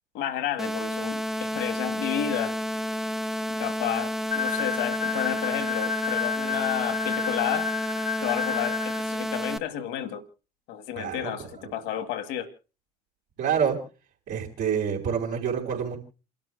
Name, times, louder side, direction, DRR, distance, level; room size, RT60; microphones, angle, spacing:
voice 1, 0.1-2.6 3.5-7.7 8.2-10.2 10.7-12.5, left 11 dB, 70° left, 7 dB, 1.7 m, -31 dB
sound 1, 0.6-9.6, equal, ahead, 0.7 m, -30 dB
sound 2, 4.3-9.2, left 7 dB, 45° left, 1.8 m, -31 dB
voice 2, 11.0-11.7 13.4-13.8 14.3-16.0, right 7 dB, 60° right, -6 dB, 4.1 m, -28 dB
29.5 x 12.0 x 2.2 m, 0.34 s
hypercardioid pair, 55°, 20 cm